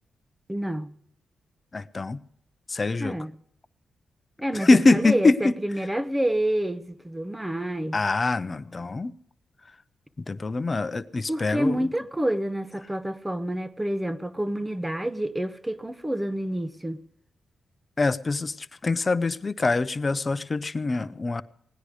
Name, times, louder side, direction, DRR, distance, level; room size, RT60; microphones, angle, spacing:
voice 1, 0.5-1.0 3.0-3.3 4.4-8.0 11.3-17.0, right 1 dB, 10° right, 0.9 m, -28 dB
voice 2, 1.7-2.2 2.7-3.2 4.5-5.5 7.9-9.1 10.2-11.9 18.0-21.4, left 3 dB, 35° left, 0.7 m, -24 dB
17.5 x 10.0 x 4.9 m
cardioid pair, 65°, 0 cm